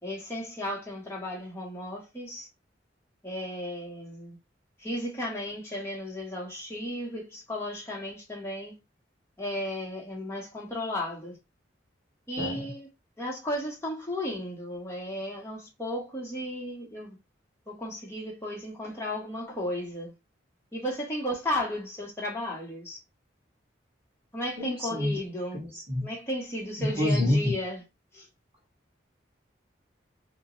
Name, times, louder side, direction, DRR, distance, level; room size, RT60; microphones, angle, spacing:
voice 1, 0.0-2.5 3.2-4.4 4.8-8.7 9.4-11.4 12.3-12.9 13.2-17.2 17.7-20.1 20.7-23.0 24.3-25.6 26.0-27.8 28.1-28.3, left 1 dB, 15° left, 1.2 m, -34 dB
voice 2, 12.4-12.7 24.6-25.1 25.5-26.1 26.8-27.5, left 1 dB, 30° right, 1.7 m, -27 dB
3.0 x 2.6 x 3.9 m
head